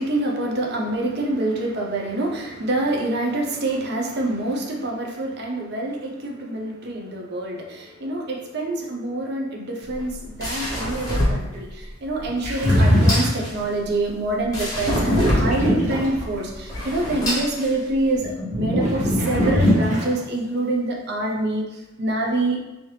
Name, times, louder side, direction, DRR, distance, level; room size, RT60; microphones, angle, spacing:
voice 1, 0.0-22.6, right 2 dB, 50° right, 0 dB, 0.6 m, -26 dB
sound 1, 9.8-18.2, equal, 15° left, 0.8 m, -28 dB
sound 2, 12.4-13.5 14.8-16.4 18.2-20.1, equal, 35° right, 1.1 m, -20 dB
3.0 x 2.7 x 3.2 m, 1.0 s
head